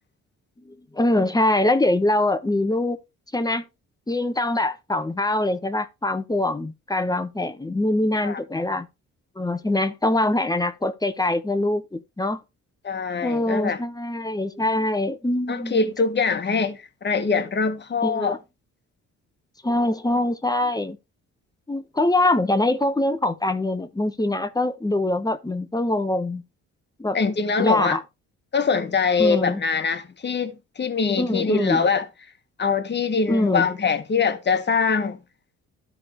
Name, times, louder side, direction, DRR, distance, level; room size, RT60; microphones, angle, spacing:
voice 1, 0.7-3.0 3.3-3.6 4.1-8.9 9.4-12.4 13.2-15.9 18.0-18.4 19.6-21.0 21.7-26.4 27.0-27.2 27.6-28.0 29.2-29.6 31.2-31.9 33.3-33.7, left 1 dB, 10° left, 1.1 m, -23 dB
voice 2, 12.8-13.8 15.5-18.3 27.1-28.0 28.5-32.0 32.6-35.2, left 5 dB, 35° left, 1.5 m, -23 dB
13.5 x 4.8 x 3.2 m
cardioid pair, 90°, 30 cm